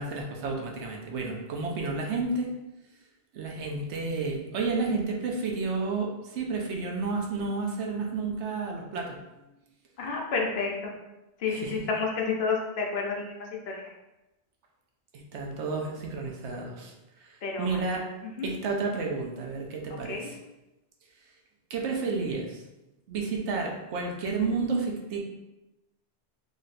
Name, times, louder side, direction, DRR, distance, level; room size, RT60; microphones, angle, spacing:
voice 1, 0.0-2.5 3.3-9.2 11.5-11.7 15.1-18.0 18.4-20.2 21.7-22.6 23.1-25.2, right 4 dB, 90° right, 1 dB, 1.0 m, -31 dB
voice 2, 10.0-10.9 11.4-13.8 17.4-17.8 18.2-18.5 19.9-20.3, left 4 dB, 65° left, 0 dB, 0.9 m, -30 dB
3.1 x 2.5 x 4.1 m, 0.98 s
omnidirectional pair, 1.1 m